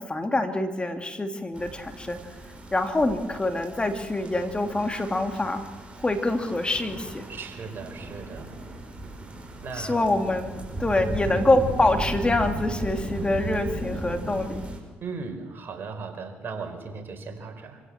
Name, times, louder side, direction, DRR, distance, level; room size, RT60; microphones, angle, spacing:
voice 1, 0.0-2.2 2.7-5.7 6.0-7.2 9.7-10.5 10.8-14.6, left 2 dB, 20° left, 6 dB, 2.7 m, -25 dB
sound 1, 1.5-14.8, right 2 dB, 25° right, 6.5 m, -36 dB
voice 2, 7.3-8.5 9.6-10.1 11.2-11.5 15.0-17.8, right 4 dB, 50° right, 5 dB, 4.7 m, -37 dB
25.5 x 16.0 x 7.5 m, 1.3 s
hypercardioid pair, 55°, 5 cm